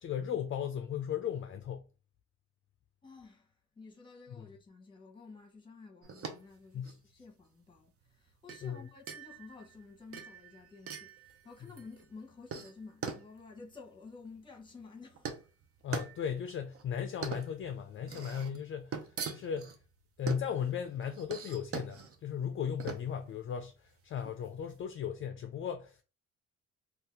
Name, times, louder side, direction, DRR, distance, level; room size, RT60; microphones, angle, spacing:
voice 1, 0.0-1.9 6.7-6.9 8.6-8.8 15.8-19.7 20.2-26.0, left 8 dB, 45° left, 0.4 m, -36 dB
voice 2, 3.0-15.6, left 4 dB, 15° left, 1.0 m, -52 dB
sound 1, 6.0-24.8, right 6 dB, 50° right, 0.6 m, -44 dB
2.7 x 2.3 x 3.4 m
cardioid pair, 90°, 30 cm